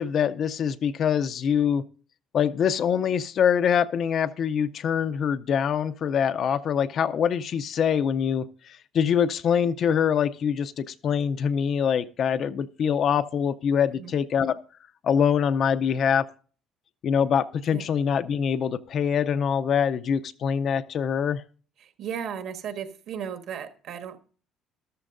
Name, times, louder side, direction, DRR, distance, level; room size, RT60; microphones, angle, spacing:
voice 1, 0.0-1.8 2.3-8.5 8.9-14.6 15.0-16.3 17.0-21.4, left 7 dB, 40° left, 0.5 m, -24 dB
voice 2, 21.8-24.2, right 8 dB, 55° right, 1.3 m, -35 dB
13.5 x 13.0 x 2.5 m
cardioid pair, 165°, 0 cm